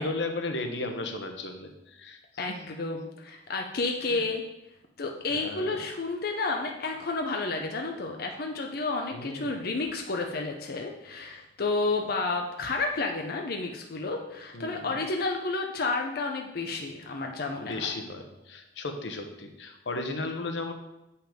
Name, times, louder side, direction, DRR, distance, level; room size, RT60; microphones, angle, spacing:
voice 1, 0.0-2.2 2.5-2.6 4.1-4.2 5.3-5.8 9.1-9.5 14.5-15.0 17.6-20.7, left 2 dB, 90° left, 5 dB, 1.0 m, -35 dB
voice 2, 2.4-4.4 5.0-17.9, left 3 dB, 60° left, 2 dB, 0.8 m, -31 dB
7.7 x 5.6 x 5.1 m, 0.90 s
head